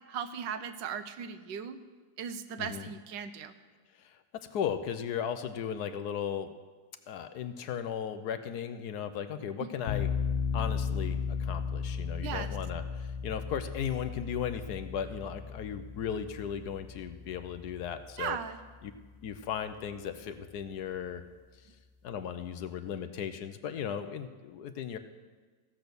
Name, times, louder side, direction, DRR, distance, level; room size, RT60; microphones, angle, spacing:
voice 1, 0.1-1.8 2.2-3.5 9.6-9.7 12.2-12.5 18.2-18.6, right 7 dB, 80° right, 10 dB, 1.4 m, -37 dB
voice 2, 2.6-2.9 4.0-4.2 4.5-6.5 7.1-10.1 10.5-18.4 18.8-18.9 19.2-21.2 22.0-25.0, left 8 dB, 70° left, 9 dB, 1.1 m, -36 dB
sound 1, 9.9-18.7, left 6 dB, 50° left, 1.1 m, -36 dB
15.5 x 6.1 x 6.8 m, 1.4 s
omnidirectional pair, 1.9 m